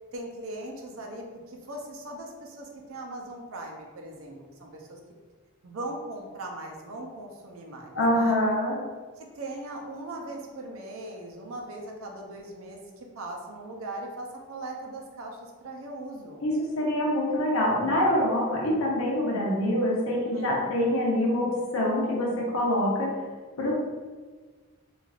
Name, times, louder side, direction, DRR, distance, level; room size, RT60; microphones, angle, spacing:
voice 1, 0.1-5.0 5.6-8.4 9.2-16.4 20.3-20.8, right 1 dB, 80° right, 1 dB, 0.5 m, -39 dB
voice 2, 7.9-8.8 16.4-23.1 23.6-23.7, left 1 dB, 80° left, -4 dB, 0.8 m, -25 dB
3.2 x 2.4 x 2.4 m, 1.4 s
head